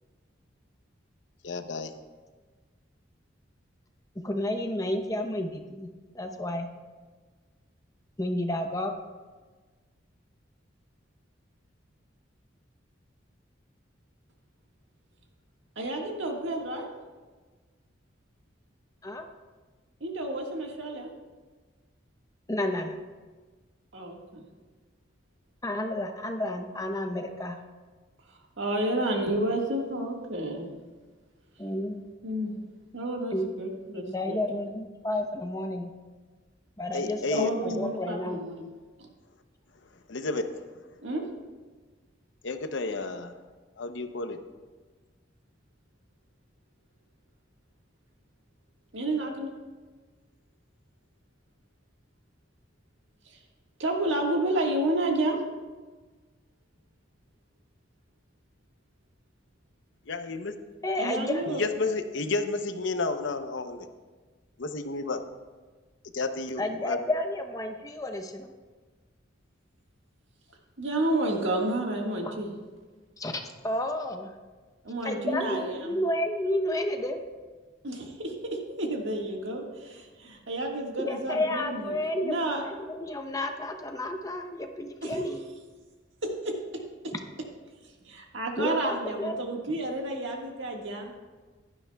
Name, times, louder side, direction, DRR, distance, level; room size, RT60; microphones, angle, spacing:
voice 1, 1.4-1.9 36.9-37.5 40.1-40.6 42.4-43.3 43.8-44.4 60.1-60.6 61.5-63.9 64.6-65.2 66.1-67.0, left 3 dB, 70° left, 8 dB, 0.7 m, -31 dB
voice 2, 4.2-5.9 6.1-6.7 8.2-8.9 19.0-19.3 22.5-23.0 25.6-27.6 31.6-32.0 33.3-33.5 34.1-35.9 36.8-38.4 60.8-61.6 66.6-68.5 72.2-72.3 73.2-74.3 75.0-77.2 81.0-85.4 88.6-89.4, left 1 dB, 20° left, 5 dB, 0.7 m, -31 dB
voice 3, 15.7-16.9 20.0-21.1 23.9-24.4 28.6-30.7 32.2-32.5 32.9-34.4 37.3-38.7 39.0-39.1 41.0-41.3 48.9-49.5 53.3-53.4 53.8-55.4 61.0-61.6 70.8-72.5 74.8-76.0 77.8-81.9 82.2-82.6 85.0-85.2 86.2-87.1 88.0-91.1, right 1 dB, 75° right, 1 dB, 1.7 m, -30 dB
15.5 x 11.5 x 2.3 m, 1.4 s
head